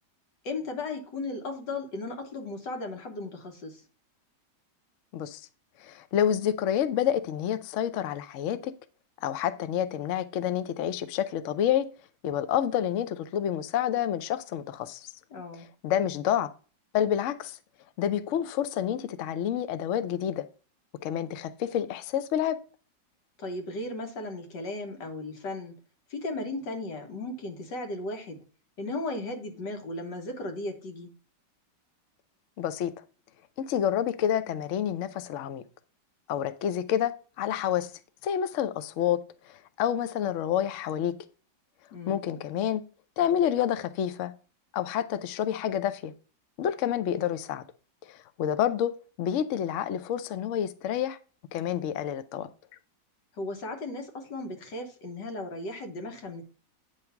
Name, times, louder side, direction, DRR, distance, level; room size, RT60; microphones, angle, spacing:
voice 1, 0.4-3.8 15.3-15.7 23.4-25.7 26.1-28.4 28.8-31.1 41.9-42.2 53.3-56.4, left 2 dB, 85° left, 2.0 m, -36 dB
voice 2, 5.8-8.7 9.2-11.9 12.2-15.1 15.8-16.5 16.9-17.6 18.0-20.5 21.0-22.6 32.6-32.9 33.6-35.6 36.3-37.9 38.2-41.1 42.1-42.8 43.2-44.3 44.7-46.1 46.6-47.6 48.1-51.2 51.5-52.5, left 10 dB, 70° left, 0.7 m, -28 dB
9.0 x 3.2 x 5.7 m
omnidirectional pair, 1.9 m